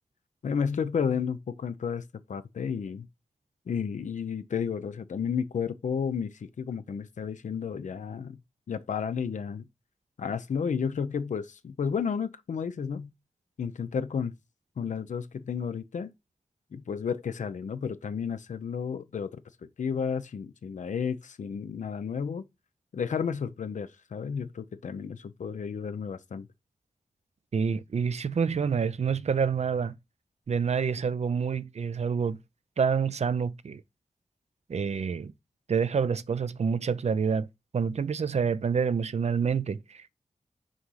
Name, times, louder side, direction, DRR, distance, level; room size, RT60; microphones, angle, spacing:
voice 1, 0.4-3.1 3.7-8.4 8.7-9.7 10.2-13.1 13.6-14.3 14.8-16.1 16.7-19.4 19.8-22.4 22.9-26.5, left 6 dB, 90° left, 0.7 m, -32 dB
voice 2, 27.5-29.9 30.5-32.4 32.8-33.8 34.7-35.3 35.7-37.5 37.7-40.1, right 6 dB, 65° right, 0.5 m, -27 dB
6.4 x 4.8 x 5.7 m
wide cardioid pair, 75°, 12 cm